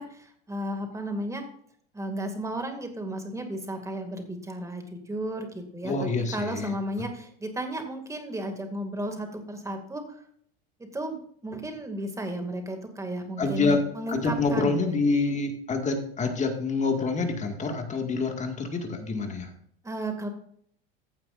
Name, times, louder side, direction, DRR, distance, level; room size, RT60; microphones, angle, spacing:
voice 1, 0.0-1.4 1.9-10.2 10.8-14.8 19.8-20.3, right 1 dB, 10° right, 5 dB, 2.2 m, -34 dB
voice 2, 5.8-6.7 13.4-19.5, left 3 dB, 25° left, 4 dB, 1.9 m, -27 dB
15.0 x 7.5 x 2.5 m, 0.65 s
hypercardioid pair, 105°, 31 cm